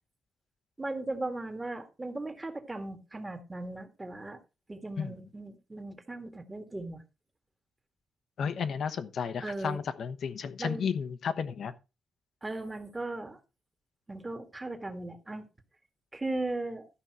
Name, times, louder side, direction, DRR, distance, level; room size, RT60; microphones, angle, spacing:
voice 1, 0.8-4.4 4.7-7.0 9.4-9.8 10.6-10.9 12.4-13.4 14.1-15.5 16.1-16.9, right 2 dB, 15° right, 1.6 m, -37 dB
voice 2, 8.4-11.7, left 6 dB, 55° left, 1.0 m, -33 dB
13.0 x 5.4 x 4.6 m
cardioid pair, 145°, 0 cm